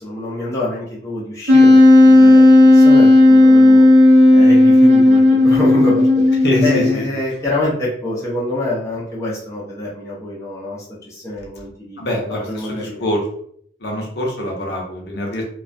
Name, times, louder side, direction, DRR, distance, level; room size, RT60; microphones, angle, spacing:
voice 1, 0.0-2.4 2.7-3.8 4.3-6.1 6.6-12.0 12.5-13.1, left 1 dB, 15° left, -7 dB, 0.5 m, -25 dB
Wind instrument woodwind instrument, 1.5-7.1, left 1 dB, 65° right, 0.6 m, -10 dB
voice 2, 6.4-7.1 12.0-13.2 13.8-15.4, left 1 dB, 60° left, -2 dB, 0.6 m, -24 dB
2.3 x 2.1 x 2.5 m, 0.64 s
head